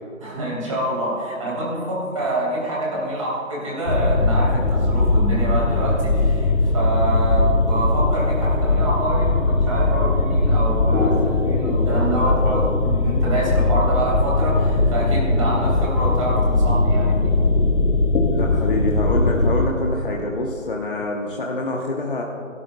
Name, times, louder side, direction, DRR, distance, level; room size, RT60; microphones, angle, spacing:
voice 1, 0.2-17.3, right 1 dB, 25° right, -5 dB, 3.1 m, -26 dB
sound 1, 3.9-19.7, left 2 dB, 70° left, 1.4 m, -19 dB
voice 2, 18.3-22.2, left 2 dB, 40° left, -1 dB, 1.0 m, -26 dB
25.5 x 12.0 x 2.3 m, 2.7 s
figure-of-eight pair, 175°, 40 cm